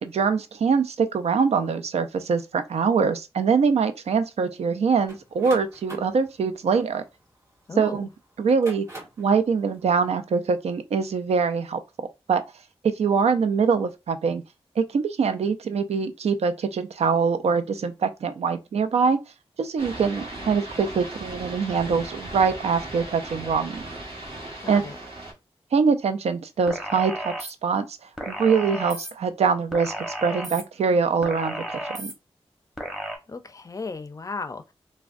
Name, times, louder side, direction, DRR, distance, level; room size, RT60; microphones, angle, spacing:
voice 1, 0.0-7.0 7.8-8.1 8.4-8.9 9.2-11.8 12.3-12.4 13.0-14.4 14.8-19.2 19.6-23.8 24.7-24.9 25.7-27.9 28.3-32.1, right 5 dB, 80° right, 0.4 m, -23 dB
sound 1, 5.1-7.8 8.4-9.3, right 1 dB, 30° right, 1.4 m, -43 dB
voice 2, 7.7-8.0 24.6-25.0 33.3-34.6, left 4 dB, 30° left, 0.4 m, -35 dB
sound 2, 19.8-25.3, right 1 dB, 55° right, 1.3 m, -37 dB
sound 3, 26.7-27.5 28.2-29.1 29.7-30.6 31.2-32.1 32.8-33.2, equal, 5° right, 0.9 m, -33 dB
3.4 x 2.1 x 2.4 m
cardioid pair, 50°, 11 cm